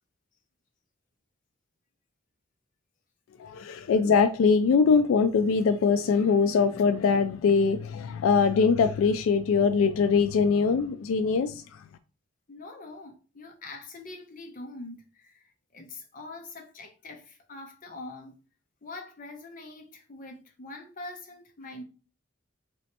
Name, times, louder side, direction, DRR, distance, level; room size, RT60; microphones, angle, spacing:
voice 1, 3.4-11.6, left 5 dB, 85° left, 0.3 m, -22 dB
voice 2, 12.5-18.3 18.8-21.8, left 2 dB, 40° left, 0.7 m, -44 dB
3.0 x 3.0 x 2.9 m
head